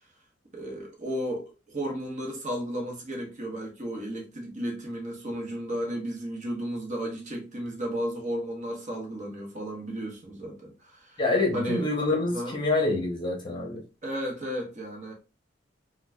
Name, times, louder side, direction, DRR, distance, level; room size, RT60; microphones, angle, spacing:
voice 1, 0.5-11.2 11.5-11.9 12.3-12.6 14.0-15.1, equal, 45° right, 1.0 m, -33 dB
voice 2, 11.2-13.8, left 2 dB, 25° left, 0.8 m, -26 dB
3.9 x 2.2 x 2.2 m
head